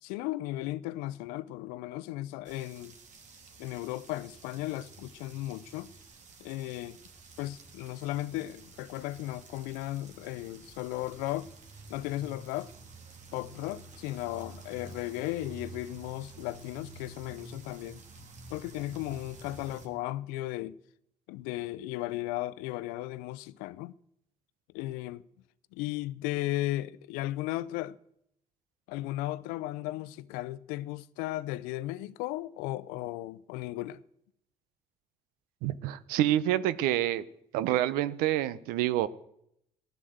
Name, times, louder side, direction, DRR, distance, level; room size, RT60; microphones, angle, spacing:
voice 1, 0.0-2.9 3.6-5.9 6.4-7.0 7.4-11.5 11.9-12.7 13.3-18.0 18.5-20.8 21.3-23.9 24.7-25.2 25.7-28.0 28.9-34.0, left 16 dB, 85° left, 0.6 m, -35 dB
sound 1, 2.4-19.9, right 3 dB, 55° right, 2.8 m, -50 dB
voice 2, 35.6-37.2 37.5-39.1, right 13 dB, 85° right, 0.8 m, -27 dB
15.0 x 11.5 x 7.9 m
supercardioid pair, 75°, 15 cm